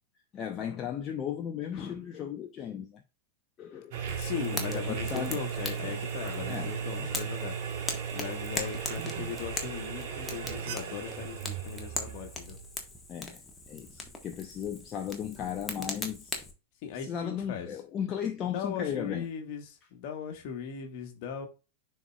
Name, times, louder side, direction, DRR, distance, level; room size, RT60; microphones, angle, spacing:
voice 1, 0.3-3.0 3.6-4.0 4.7-5.4 5.8-5.9 6.5-6.7 7.0-7.1 13.1-13.4 13.7-16.4 17.0-19.3, left 8 dB, 30° left, 0.8 m, -36 dB
sound 1, 3.9-13.0, right 7 dB, 50° right, 1.3 m, -36 dB
voice 2, 4.1-7.6 8.1-12.6 16.8-17.7 18.5-21.5, left 7 dB, 45° left, 1.5 m, -38 dB
Fire, 4.1-16.5, left 3 dB, 10° left, 1.5 m, -41 dB
11.0 x 4.3 x 2.4 m
figure-of-eight pair, 90°, 0 cm